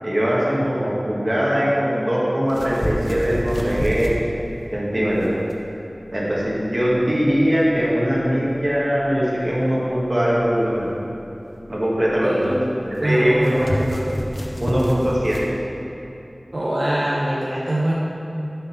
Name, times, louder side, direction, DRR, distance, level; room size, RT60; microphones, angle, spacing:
voice 1, 0.0-4.1 4.7-5.3 6.1-10.9 11.7-12.6 13.0-14.0 14.6-15.4, equal, 40° right, -6 dB, 1.5 m, -21 dB
sound 1, 2.5-15.5, equal, 45° left, 0.7 m, -31 dB
voice 2, 12.2-12.6 13.0-13.9 16.5-17.9, right 1 dB, 70° right, -7 dB, 0.8 m, -23 dB
6.7 x 3.8 x 5.7 m, 3.0 s
wide cardioid pair, 50°, 0 cm